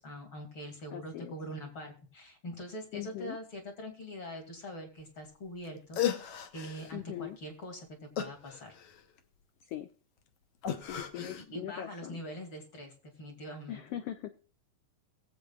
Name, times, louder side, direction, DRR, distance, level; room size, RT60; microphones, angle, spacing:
voice 1, 0.0-6.0 6.5-8.7 11.2-14.0, equal, 45° left, 2 dB, 3.1 m, -43 dB
voice 2, 0.9-1.3 2.9-3.4 6.9-7.4 9.7-9.9 10.9-12.2 13.7-14.4, left 12 dB, 80° left, 8 dB, 1.4 m, -40 dB
sound 1, 5.6-5.7 5.9-6.9 8.2-9.2 10.6-11.4, left 10 dB, 65° left, 1.7 m, -35 dB
22.0 x 8.0 x 2.4 m, 0.39 s
omnidirectional pair, 3.5 m